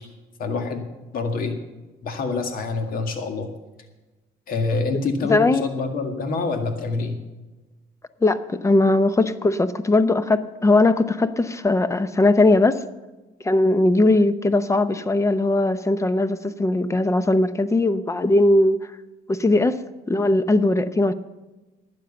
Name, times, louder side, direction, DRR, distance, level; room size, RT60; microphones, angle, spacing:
voice 1, 0.4-0.8 1.1-1.6 2.0-3.5 4.5-7.2, left 3 dB, 60° left, 6 dB, 1.9 m, -26 dB
voice 2, 5.3-5.6 8.2-12.8 13.4-18.8 19.3-19.8 20.1-21.1, left 2 dB, 15° left, 13 dB, 0.7 m, -19 dB
12.5 x 9.3 x 6.9 m, 1.2 s
cardioid pair, 110°, 17 cm